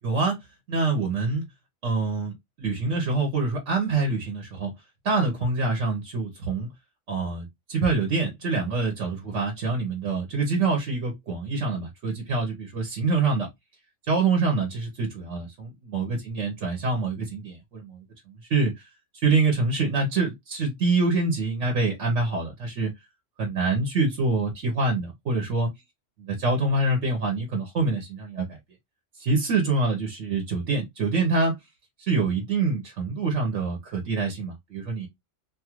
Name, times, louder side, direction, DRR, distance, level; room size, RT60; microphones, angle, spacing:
voice 1, 0.0-0.4 0.7-1.4 1.8-4.7 5.0-6.7 7.1-13.5 14.0-18.9 19.2-22.9 23.4-25.7 26.2-28.5 29.2-31.6 32.0-35.1, right 3 dB, 75° right, 1.2 m, -25 dB
2.6 x 2.4 x 2.9 m
omnidirectional pair, 1.2 m